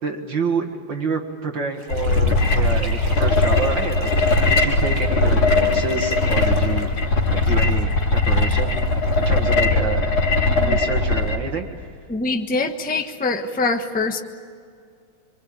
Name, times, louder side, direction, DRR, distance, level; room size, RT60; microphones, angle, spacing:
voice 1, 0.0-7.0 7.3-8.8 9.2-10.1 10.6-11.8, right 4 dB, 60° right, 3 dB, 2.5 m, -28 dB
sound 1, 1.7-9.7, right 1 dB, 35° right, 7.4 m, -39 dB
sound 2, 1.9-11.4, left 3 dB, 80° left, 3.7 m, -19 dB
voice 2, 10.5-10.8 12.1-14.2, left 3 dB, 5° left, 5 dB, 1.0 m, -24 dB
26.0 x 25.5 x 9.0 m, 2.2 s
omnidirectional pair, 2.4 m